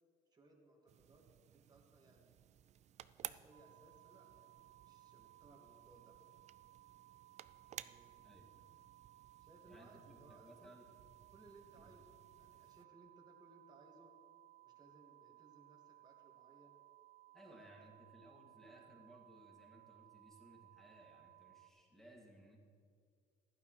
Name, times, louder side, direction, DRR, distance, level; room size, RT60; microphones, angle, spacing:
voice 1, 0.3-1.3 1.5-2.4 3.0-6.2 7.7-8.3 9.4-10.8 11.3-14.1 14.6-16.8 17.4-17.9, right 2 dB, 25° right, -1 dB, 2.0 m, -65 dB
sound 1, 0.9-12.8, right 11 dB, 40° right, 0.4 m, -56 dB
sound 2, 3.5-21.7, right 17 dB, 85° right, 0.6 m, -63 dB
voice 2, 8.2-8.7 9.7-10.8 11.7-11.9 17.3-22.6, right 1 dB, ahead, -2 dB, 2.4 m, -61 dB
15.5 x 11.5 x 3.3 m, 2.2 s
cardioid pair, 110°, 17 cm